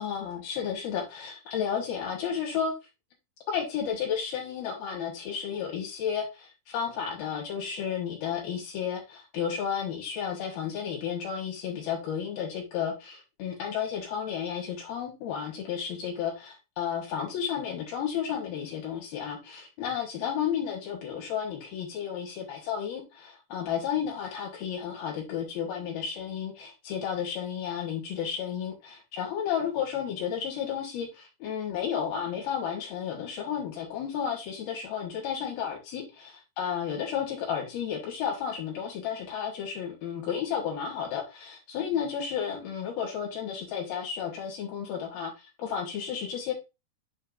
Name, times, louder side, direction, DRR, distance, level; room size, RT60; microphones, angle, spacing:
voice 1, 0.0-2.7 3.5-46.5, left 8 dB, 75° left, -1 dB, 3.3 m, -32 dB
8.7 x 5.6 x 2.5 m, 0.26 s
omnidirectional pair, 4.5 m